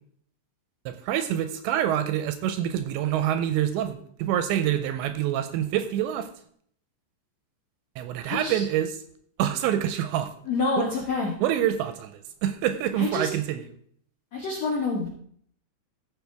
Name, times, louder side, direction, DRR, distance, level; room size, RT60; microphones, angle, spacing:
voice 1, 0.9-6.3 8.0-8.9 9.4-10.3 10.8-10.9 11.4-13.6, right 11 dB, 80° right, 10 dB, 2.7 m, -26 dB
voice 2, 8.2-8.6 10.4-11.3 13.0-13.3 14.3-15.1, left 3 dB, 70° left, -2 dB, 1.6 m, -27 dB
15.5 x 6.2 x 3.4 m, 0.62 s
omnidirectional pair, 5.5 m